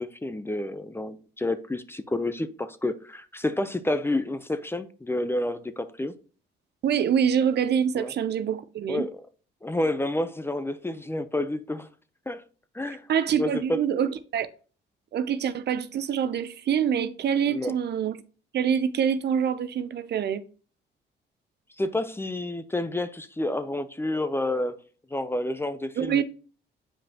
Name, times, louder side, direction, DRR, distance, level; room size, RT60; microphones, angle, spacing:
voice 1, 0.0-6.1 7.9-8.1 8.9-9.2 9.6-11.9 12.3-12.4 12.7-13.0 13.4-13.8 17.5-17.7 21.8-24.8 25.1-26.2, left 1 dB, 10° left, 0.5 m, -29 dB
voice 2, 6.8-9.1 13.1-14.5 15.1-18.2 18.5-20.4 26.0-26.2, right 8 dB, 55° right, 0.6 m, -25 dB
7.6 x 5.1 x 2.8 m
cardioid pair, 90°, 20 cm